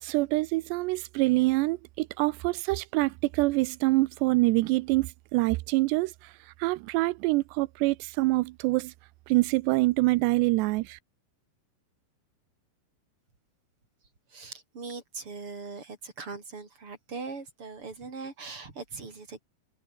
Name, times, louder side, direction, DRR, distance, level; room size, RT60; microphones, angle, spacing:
voice 1, 0.0-8.9 9.3-11.0, right 21 dB, 85° right, 2.4 m, -26 dB
voice 2, 14.3-19.4, right 4 dB, 30° right, 5.6 m, -40 dB
omnidirectional pair, 5.6 m